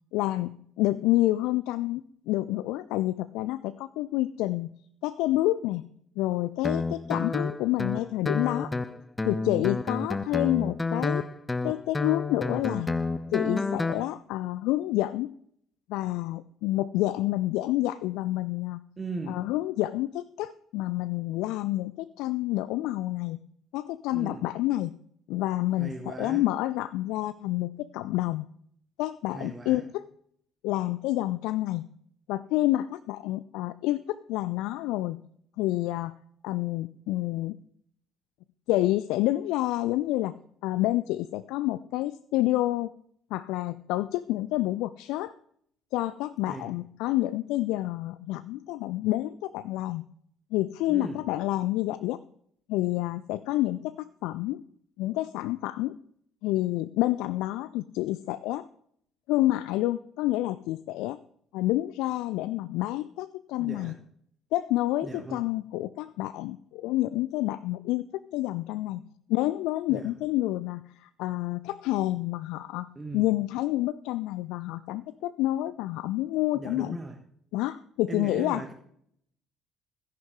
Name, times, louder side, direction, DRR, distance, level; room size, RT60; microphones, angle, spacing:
voice 1, 0.1-0.5 0.8-4.7 5.0-5.9 6.2-8.7 9.2-11.3 11.6-12.9 13.3-15.3 15.9-18.8 19.3-23.4 23.7-24.9 25.3-28.4 29.0-30.0 30.6-31.8 32.3-35.2 35.6-36.1 36.4-37.6 38.7-40.3 40.6-42.9 43.3-45.3 45.9-50.0 50.5-52.2 52.7-54.6 55.0-56.0 56.4-58.7 59.3-61.2 61.5-63.9 64.5-69.0 69.3-77.0 77.5-78.6, left 16 dB, 60° left, 16 dB, 0.3 m, -28 dB
Guitar, 6.6-14.0, left 3 dB, 20° left, 0.8 m, -30 dB
voice 2, 19.0-19.4 24.1-24.5 25.8-26.4 29.3-29.8 46.5-46.7 50.9-51.2 63.6-63.9 65.0-65.4 69.9-70.1 72.9-73.3 76.5-77.2 78.1-78.7, right 3 dB, 25° right, 4 dB, 1.4 m, -38 dB
13.5 x 10.5 x 3.6 m, 0.66 s
figure-of-eight pair, 50°, 0 cm